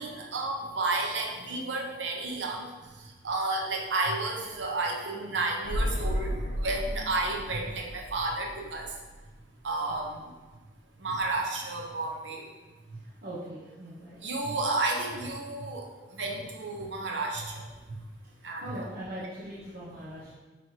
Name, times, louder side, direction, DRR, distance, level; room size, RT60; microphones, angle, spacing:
voice 1, 0.0-2.7 3.2-6.3 6.6-8.9 9.6-10.2 11.0-12.4 14.2-15.8 16.1-17.6 18.4-18.9, right 2 dB, 90° right, 0 dB, 0.7 m, -31 dB
sound 1, 5.6-9.4 9.7-9.8, equal, 50° left, 0.4 m, -33 dB
voice 2, 13.2-14.2 18.6-20.3, equal, 55° right, -8 dB, 0.9 m, -40 dB
5.6 x 3.1 x 2.8 m, 1.2 s
head